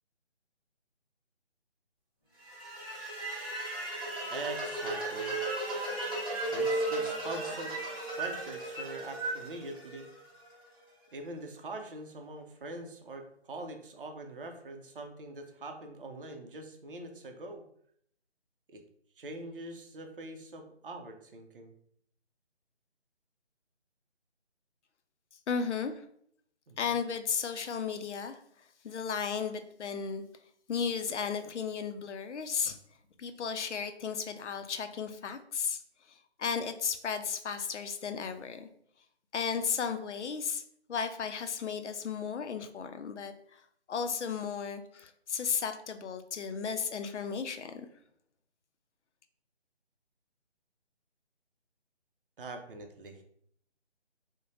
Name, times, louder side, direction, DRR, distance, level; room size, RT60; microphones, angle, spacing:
sound 1, 2.4-10.5, right 2 dB, 20° right, 0.8 m, -35 dB
voice 1, 4.3-5.5 6.5-7.7 8.2-10.1 11.1-17.6 18.7-18.8 19.2-21.7 26.7-26.9 52.4-53.2, right 2 dB, 50° right, 4 dB, 0.5 m, -43 dB
voice 2, 25.5-26.0 26.8-28.4 28.8-30.2 30.7-32.8 33.2-35.8 36.1-38.7 39.3-40.6 40.9-43.6 43.9-47.9, left 6 dB, 85° left, 8 dB, 0.5 m, -34 dB
2.5 x 2.1 x 3.0 m, 0.67 s
figure-of-eight pair, 160°, 34 cm